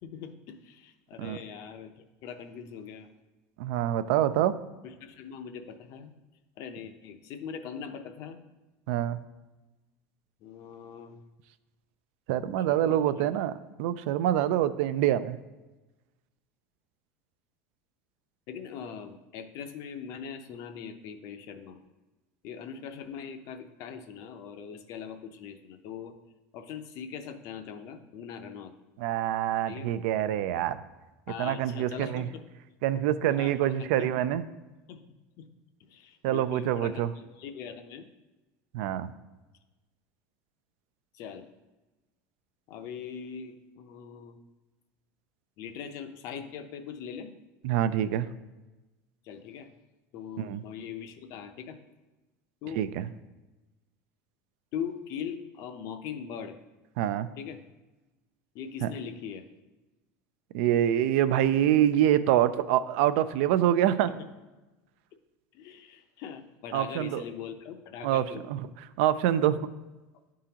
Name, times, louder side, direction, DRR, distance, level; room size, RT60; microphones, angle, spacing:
voice 1, 0.0-3.1 4.8-6.1 6.6-8.5 10.4-11.2 12.7-13.4 18.5-21.8 22.4-26.1 26.5-28.7 29.7-29.9 31.3-32.4 33.2-34.1 34.9-35.0 35.4-35.5 35.8-38.1 41.1-41.5 42.7-44.4 45.6-47.3 49.2-49.7 50.1-51.8 52.6-52.8 54.7-56.6 57.4-57.6 58.5-59.4 64.2-64.3 65.5-68.4, left 7 dB, 50° left, 8 dB, 0.6 m, -41 dB
voice 2, 3.6-4.5 8.9-9.2 12.3-13.5 13.8-15.4 29.0-30.8 31.4-32.2 32.8-34.4 36.2-37.1 38.7-39.1 47.6-48.3 50.4-50.6 52.8-53.1 57.0-57.3 58.8-58.9 60.5-64.1 66.7-67.2 68.0-68.7 69.0-69.6, right 11 dB, 70° right, 13 dB, 0.3 m, -25 dB
10.5 x 3.7 x 2.8 m, 1.1 s
supercardioid pair, 150°, 7 cm